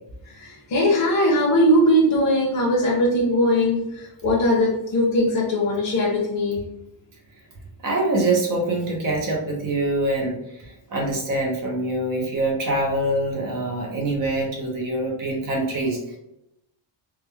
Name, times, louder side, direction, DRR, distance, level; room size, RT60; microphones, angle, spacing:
voice 1, 0.2-6.6, equal, 45° left, -4 dB, 0.9 m, -20 dB
voice 2, 7.8-16.2, right 2 dB, 45° right, -1 dB, 1.0 m, -24 dB
3.6 x 2.3 x 3.4 m, 0.83 s
wide cardioid pair, 170°, 45 cm